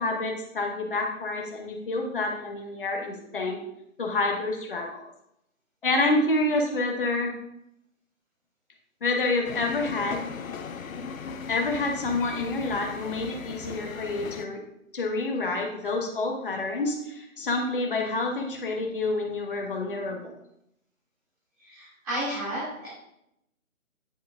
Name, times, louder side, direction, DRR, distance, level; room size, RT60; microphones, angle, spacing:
voice 1, 0.0-3.6 4.0-5.1 5.8-7.3 9.0-10.3 11.5-14.6 14.9-20.3, left 2 dB, 40° left, 1 dB, 1.3 m, -28 dB
sound 1, 9.4-14.5, left 6 dB, 70° left, 0.7 m, -38 dB
voice 2, 21.6-22.9, right 1 dB, 25° right, -12 dB, 2.4 m, -32 dB
10.0 x 5.1 x 2.4 m, 0.79 s
hypercardioid pair, 170°, 42 cm